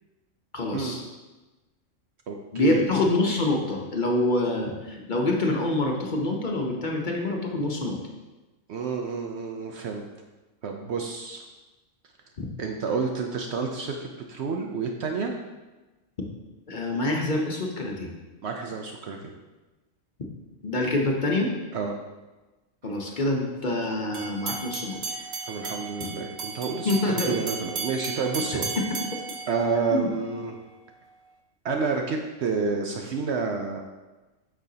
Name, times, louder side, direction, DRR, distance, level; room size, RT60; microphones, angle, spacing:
voice 1, 0.5-1.0 2.5-8.0 12.4-12.5 16.7-18.1 20.6-21.5 22.8-25.0 26.8-27.3 29.9-30.1, left 2 dB, 45° left, 0 dB, 0.9 m, -26 dB
voice 2, 2.3-2.8 8.7-10.0 10.6-11.4 12.6-15.4 18.4-19.3 21.7-21.9 25.5-28.7 29.5-30.6 31.6-33.8, right 5 dB, 65° right, 2 dB, 0.9 m, -29 dB
sound 1, 24.1-30.4, right 5 dB, 90° right, 1.2 m, -35 dB
8.7 x 6.2 x 2.8 m, 1.2 s
omnidirectional pair, 1.3 m